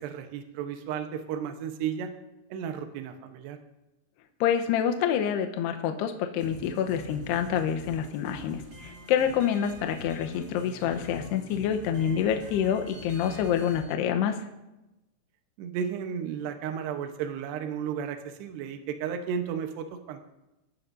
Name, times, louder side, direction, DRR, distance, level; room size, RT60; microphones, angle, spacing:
voice 1, 0.0-2.1 2.5-3.6 15.6-20.2, right 8 dB, 75° right, 6 dB, 2.7 m, -33 dB
voice 2, 4.4-14.4, left 8 dB, 80° left, 5 dB, 2.4 m, -27 dB
sound 1, 6.4-13.8, right 1 dB, 35° right, 5.9 m, -46 dB
25.0 x 14.5 x 2.7 m, 0.98 s
omnidirectional pair, 5.9 m